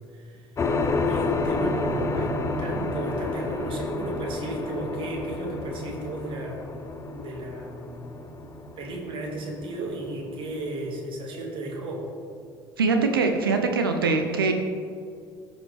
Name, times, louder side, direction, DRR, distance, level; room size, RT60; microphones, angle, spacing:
voice 1, 0.1-0.5 1.0-2.3 2.6-8.0 8.8-12.1, right 2 dB, 45° right, 0 dB, 2.0 m, -34 dB
sound 1, 0.6-10.7, left 3 dB, 25° left, 0.8 m, -30 dB
voice 2, 12.8-14.5, right 4 dB, 75° right, 5 dB, 0.7 m, -23 dB
15.0 x 5.2 x 3.4 m, 2.2 s
figure-of-eight pair, 55°, 12 cm